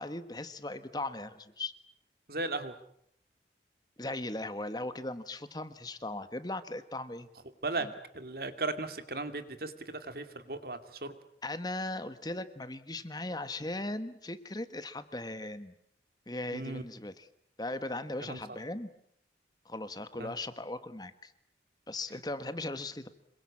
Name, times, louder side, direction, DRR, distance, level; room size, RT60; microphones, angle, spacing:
voice 1, 0.0-1.7 4.0-7.3 7.7-7.9 11.4-15.7 16.3-17.3 17.6-18.9 19.6-21.3 21.9-23.1, left 2 dB, 20° left, 11 dB, 1.4 m, -38 dB
voice 2, 2.3-2.7 7.6-7.9 8.1-9.7 10.0-11.1 16.5-16.8 18.3-18.4 20.2-20.4, right 2 dB, 55° right, 9 dB, 2.5 m, -36 dB
27.0 x 23.0 x 8.6 m, 0.71 s
head